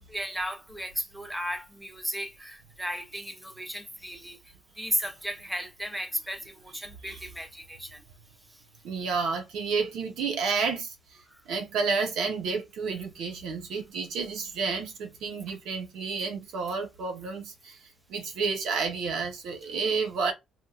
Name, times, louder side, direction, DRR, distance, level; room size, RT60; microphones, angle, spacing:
voice 1, 0.1-4.4 4.8-8.0 11.3-11.4, equal, 5° right, 0.5 m, -35 dB
voice 2, 8.8-10.9 11.5-17.8 18.1-20.3, right 5 dB, 80° right, 1.0 m, -30 dB
4.6 x 2.2 x 2.4 m
cardioid pair, 140°, 0 cm